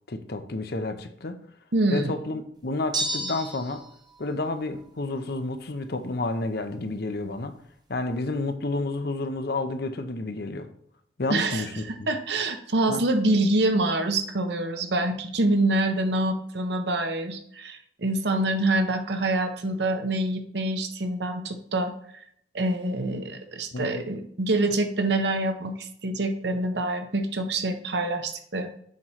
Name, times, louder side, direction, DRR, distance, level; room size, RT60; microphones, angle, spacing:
voice 1, 0.1-1.4 1.9-3.8 4.2-7.5 7.9-10.7 11.2-12.1 12.9-13.0 23.7-24.0, left 2 dB, 60° left, 8 dB, 0.7 m, -30 dB
voice 2, 1.7-2.1 11.3-11.6 12.1-21.9 22.5-28.7, right 2 dB, 65° right, 7 dB, 0.9 m, -26 dB
sound 1, 2.9-3.9, right 2 dB, 25° right, 0.9 m, -30 dB
7.4 x 3.2 x 5.6 m, 0.67 s
head